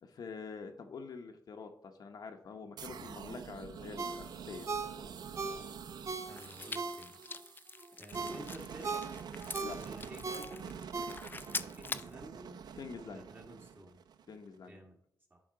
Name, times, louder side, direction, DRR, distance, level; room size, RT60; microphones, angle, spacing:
voice 1, 0.0-4.7 9.6-9.8 12.8-13.2 14.3-14.8, left 5 dB, 70° left, 5 dB, 0.9 m, -46 dB
voice 2, 2.8-3.2 6.2-7.1 8.0-9.0 9.7-10.8 11.4-12.6 13.0-14.0 14.7-15.0 15.3-15.4, right 1 dB, 30° right, 1 dB, 1.7 m, -51 dB
sound 1, 2.8-14.6, right 7 dB, 80° right, 0.4 m, -47 dB
Ringtone, 4.0-7.4 7.8-11.6 12.0-12.1, right 4 dB, 45° right, 0.7 m, -40 dB
sound 2, 6.3-12.1, left 4 dB, 30° left, 0.3 m, -44 dB
10.5 x 3.7 x 4.8 m, 0.68 s
wide cardioid pair, 110°, 7 cm